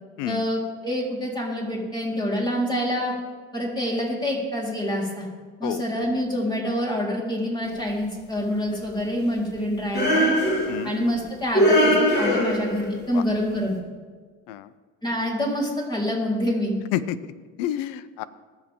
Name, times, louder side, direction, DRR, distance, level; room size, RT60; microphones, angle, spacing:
voice 1, 0.3-3.1 3.5-5.3 5.6-10.3 10.8-13.7 15.0-16.8, equal, 15° left, -4 dB, 4.1 m, -26 dB
sound 1, 9.9-11.0 11.5-12.9, equal, 35° left, 3.2 m, -20 dB
voice 2, 16.9-17.3 17.6-18.2, left 12 dB, 85° left, 16 dB, 0.6 m, -29 dB
20.5 x 7.4 x 3.7 m, 1.5 s
supercardioid pair, 90°, 29 cm